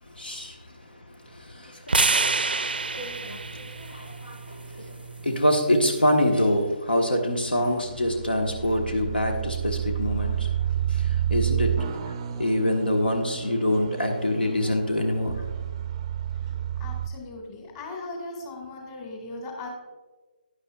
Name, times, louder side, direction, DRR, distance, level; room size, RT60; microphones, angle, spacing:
voice 1, 0.0-15.4, left 1 dB, 70° left, 3 dB, 1.3 m, -26 dB
sound 1, 1.9-6.1, right 3 dB, 70° right, 0.5 m, -28 dB
sound 2, 7.6-17.1, right 10 dB, 30° right, 0.5 m, -30 dB
voice 2, 16.8-19.7, left 2 dB, 25° left, 1 dB, 1.8 m, -38 dB
11.5 x 10.0 x 2.3 m, 1.2 s
figure-of-eight pair, 145°, 5 cm